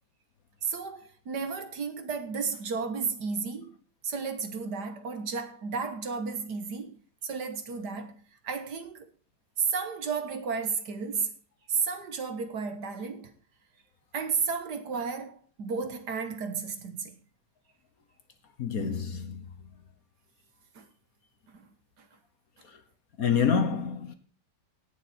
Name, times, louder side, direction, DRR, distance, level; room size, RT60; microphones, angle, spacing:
voice 1, 0.6-3.8 4.0-8.2 8.4-9.1 9.6-11.3 11.7-13.3 14.1-17.2 20.8-20.9 21.5-21.7 22.0-22.1, right 5 dB, 60° right, 1.9 m, -33 dB
voice 2, 18.6-19.5 23.2-24.1, left 6 dB, 50° left, 1.5 m, -27 dB
17.5 x 7.4 x 4.3 m
omnidirectional pair, 2.1 m